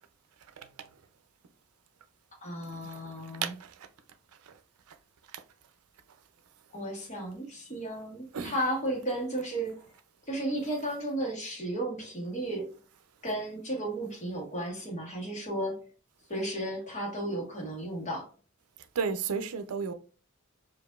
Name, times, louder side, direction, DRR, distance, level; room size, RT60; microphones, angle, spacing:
voice 1, 2.4-3.5 6.7-9.9 10.3-12.7 13.2-15.8 16.3-18.3, right 1 dB, 30° left, 1.3 m, -34 dB
voice 2, 19.0-19.9, right 6 dB, 85° right, 0.5 m, -32 dB
4.8 x 2.5 x 2.3 m
head